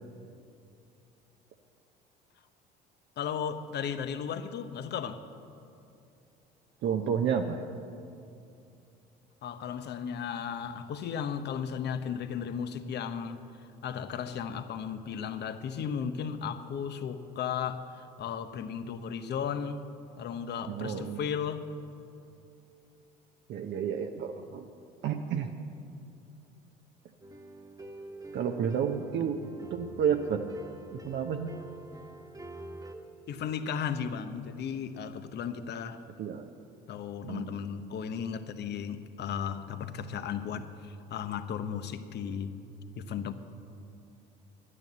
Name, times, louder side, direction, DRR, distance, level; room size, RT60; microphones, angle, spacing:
voice 1, 3.2-5.3 9.4-19.9 20.2-21.7 33.3-36.0 36.9-42.5 43.0-43.3, left 7 dB, 55° left, 10 dB, 1.0 m, -35 dB
voice 2, 6.8-7.6 20.7-21.2 23.5-24.7 25.0-25.5 28.3-29.4 29.7-30.4 30.9-31.5 36.2-36.5 37.2-37.6, right 8 dB, 60° right, 4 dB, 0.8 m, -30 dB
sound 1, 27.2-33.0, right 2 dB, 15° right, 1.4 m, -46 dB
10.5 x 9.8 x 7.9 m, 2.6 s
hypercardioid pair, 70°, 21 cm